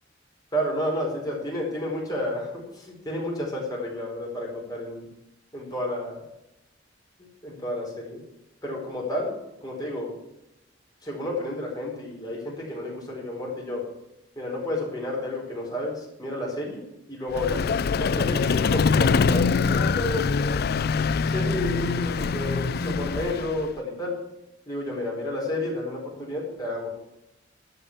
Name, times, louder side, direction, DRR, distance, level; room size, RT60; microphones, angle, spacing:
voice 1, 0.5-5.1 5.5-6.2 7.2-8.2 8.6-9.4 9.6-10.1 11.0-13.8 14.4-16.8 17.1-20.6 21.3-24.1 24.7-26.9, left 1 dB, 20° left, -3 dB, 4.4 m, -31 dB
Vehicle, 17.3-23.7, left 5 dB, 55° left, 0.4 m, -24 dB
12.0 x 5.5 x 8.2 m, 0.89 s
head